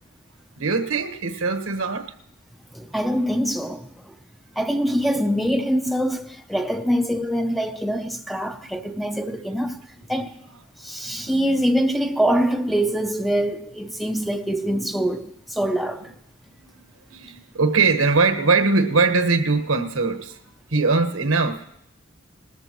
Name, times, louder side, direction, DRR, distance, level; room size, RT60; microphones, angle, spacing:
voice 1, 0.6-2.1 9.2-9.3 11.2-11.5 17.1-20.4 20.7-21.6, right 4 dB, 85° right, 1.2 m, -21 dB
voice 2, 2.7-4.2 4.6-10.4 10.8-16.1, equal, ahead, 0.5 m, -24 dB
19.5 x 13.5 x 3.0 m
head